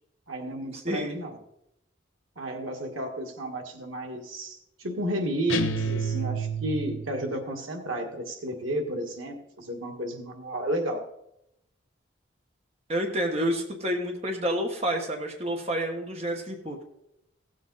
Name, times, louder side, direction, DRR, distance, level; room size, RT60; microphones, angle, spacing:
voice 1, 0.3-1.4 2.4-11.0, right 1 dB, 90° right, 2 dB, 1.8 m, -32 dB
voice 2, 0.8-1.2 12.9-16.8, equal, 30° right, 2 dB, 1.3 m, -29 dB
sound 1, 5.5-7.2, right 3 dB, 85° left, 1.0 m, -29 dB
16.5 x 7.5 x 4.1 m, 0.82 s
head